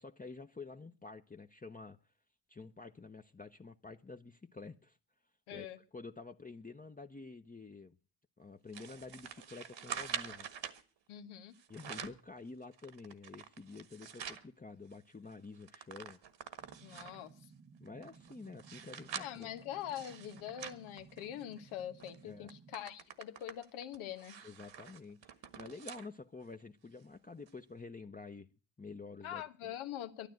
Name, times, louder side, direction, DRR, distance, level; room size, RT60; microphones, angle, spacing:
voice 1, 0.0-2.0 2.5-5.0 5.5-5.7 5.9-8.0 8.4-10.5 11.7-16.2 17.8-19.5 22.2-22.5 24.4-28.5 28.8-29.7, left 3 dB, 15° left, 0.9 m, -49 dB
voice 2, 5.5-5.8 11.1-11.6 16.8-17.3 19.1-24.3 29.2-30.3, left 10 dB, 85° left, 1.4 m, -44 dB
sound 1, 8.7-10.8 11.5-12.3 12.7-14.5 14.9-15.0 15.3-17.3 17.9-21.6 22.0-22.2 22.5-26.1 26.5-26.6 27.5-27.6, right 8 dB, 65° right, 1.6 m, -46 dB
sound 2, 16.6-22.8, right 5 dB, 30° right, 1.1 m, -59 dB
11.5 x 10.0 x 9.2 m
hypercardioid pair, 45°, 48 cm